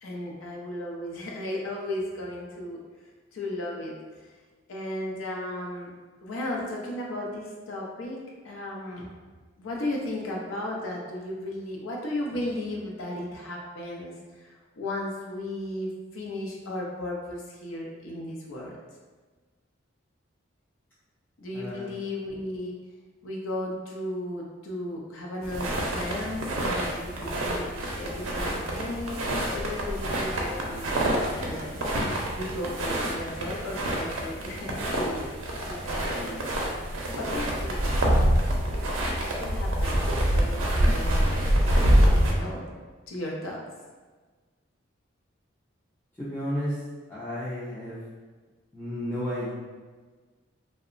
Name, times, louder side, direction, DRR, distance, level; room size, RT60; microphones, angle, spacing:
voice 1, 0.0-2.8 3.3-4.3 4.7-9.1 9.6-18.8 21.4-22.8 23.2-31.9 32.3-35.3 35.7-36.7 37.1-38.3 39.1-41.4 42.0-42.7 43.1-43.6, left 1 dB, 90° left, -2 dB, 0.5 m, -35 dB
voice 2, 21.5-21.9 46.2-46.7 47.1-48.0 48.7-49.5, equal, 10° left, -10 dB, 0.3 m, -32 dB
sound 1, 25.4-42.3, right 1 dB, 85° right, 0.5 m, -26 dB
2.8 x 2.1 x 2.5 m, 1.4 s
head